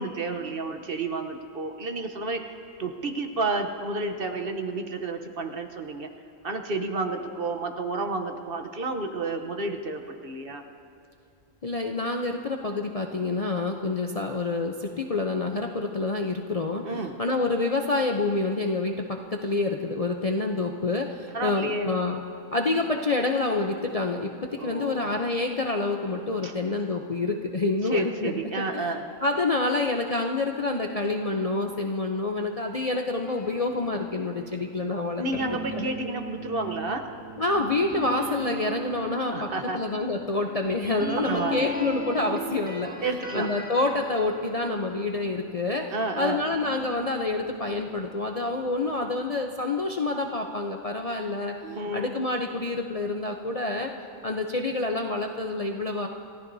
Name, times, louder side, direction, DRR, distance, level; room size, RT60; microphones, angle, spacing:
voice 1, 0.0-2.4 2.8-6.1 6.4-10.6 16.8-17.2 21.3-21.9 24.6-25.1 26.4-26.5 27.9-29.0 35.2-37.0 39.3-39.8 41.3-41.7 43.0-43.5 45.9-46.4 51.6-52.1, right 3 dB, 50° right, 5 dB, 1.1 m, -31 dB
voice 2, 11.6-16.8 17.2-22.2 22.5-24.3 24.6-28.9 29.2-35.2 35.7-35.9 37.4-39.5 39.7-42.9 43.3-51.5 51.9-53.9 54.2-56.1, left 2 dB, 40° left, 2 dB, 0.6 m, -27 dB
sound 1, 33.2-45.7 46.2-49.1, right 1 dB, 5° right, 1.3 m, -38 dB
28.5 x 15.0 x 2.7 m, 2.5 s
omnidirectional pair, 1.3 m